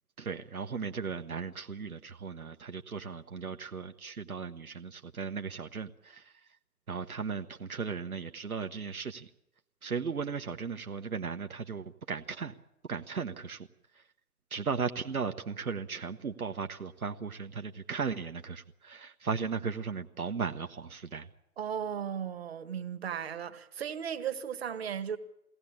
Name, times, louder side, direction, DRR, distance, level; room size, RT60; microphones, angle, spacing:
voice 1, 0.2-6.3 6.9-9.3 9.8-12.5 12.9-13.7 14.5-21.3, right 5 dB, 65° right, 1.3 m, -36 dB
voice 2, 21.6-25.2, right 8 dB, 40° right, 1.8 m, -36 dB
22.5 x 17.5 x 8.6 m
figure-of-eight pair, 140°, 46 cm